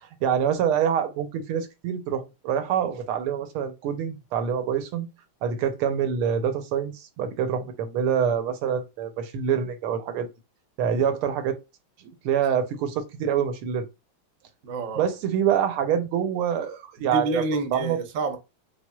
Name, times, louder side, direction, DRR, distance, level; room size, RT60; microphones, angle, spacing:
voice 1, 0.0-5.1 5.4-10.3 10.8-11.6 12.0-13.9 15.0-17.4 17.7-18.0, right 8 dB, 80° right, 1.5 m, -26 dB
voice 2, 14.6-15.1 17.1-18.4, right 3 dB, 60° right, 0.8 m, -28 dB
6.0 x 2.1 x 2.3 m
omnidirectional pair, 2.4 m